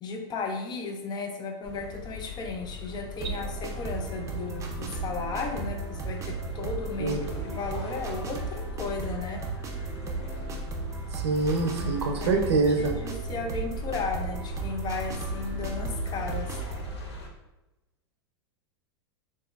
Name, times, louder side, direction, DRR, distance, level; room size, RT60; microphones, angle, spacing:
voice 1, 0.0-9.4 11.8-12.5 12.8-16.5, left 4 dB, 30° left, 4 dB, 0.5 m, -35 dB
sound 1, 1.6-17.3, left 2 dB, 85° left, 0.7 m, -40 dB
sound 2, 3.2-16.9, right 4 dB, 20° right, 0.6 m, -35 dB
voice 2, 11.1-12.9, right 3 dB, 85° right, 4 dB, 0.6 m, -25 dB
3.9 x 2.6 x 2.4 m, 1.0 s
hypercardioid pair, 105°, 14 cm